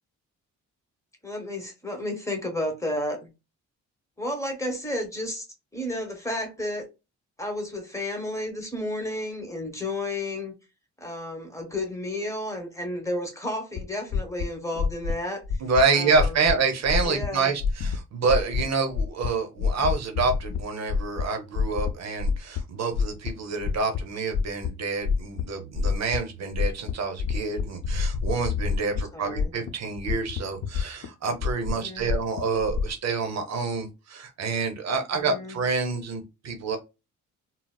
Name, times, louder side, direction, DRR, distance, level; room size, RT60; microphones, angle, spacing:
voice 1, 1.2-3.3 4.2-5.5 5.7-6.8 7.4-10.5 11.0-15.6 15.9-16.4 17.0-17.5 28.9-29.5 31.7-32.1 35.2-35.6, left 1 dB, 10° left, 1.1 m, -32 dB
sound 1, 13.8-13.9 14.1-14.5 14.7-15.1 15.4-15.8 16.1-16.5 16.9-17.3 17.6-18.0 18.3-18.6 18.9-19.3 19.6-20.6 20.9-21.3 21.6-21.9 22.2-22.6 22.9-24.0 24.3-24.7 25.0-25.4 25.7-26.2 26.5-26.9 27.2-29.0 29.3-29.7 30.0-31.1 31.4-32.9, left 5 dB, 65° left, 0.6 m, -26 dB
voice 2, 15.6-36.8, right 4 dB, 60° right, 0.8 m, -27 dB
3.8 x 2.0 x 2.3 m
cardioid pair, 90°, 30 cm